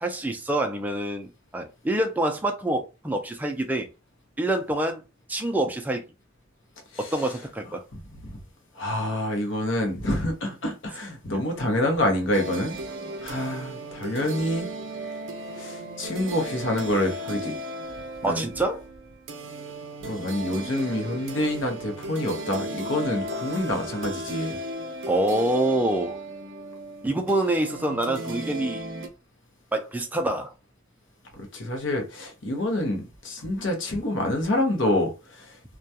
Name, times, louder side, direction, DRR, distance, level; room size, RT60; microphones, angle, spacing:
voice 1, 0.0-3.9 4.4-5.0 5.3-6.0 7.0-7.8 18.2-18.8 25.1-26.2 27.0-28.9 29.7-30.5, right 1 dB, 10° right, 0.3 m, -26 dB
voice 2, 8.7-12.8 13.2-14.7 15.1-15.2 15.6-17.6 18.2-18.5 20.0-24.6 31.3-35.6, left 1 dB, 70° left, 0.8 m, -27 dB
sound 1, 12.3-29.1, right 1 dB, 65° right, 0.5 m, -36 dB
2.3 x 2.2 x 2.7 m
head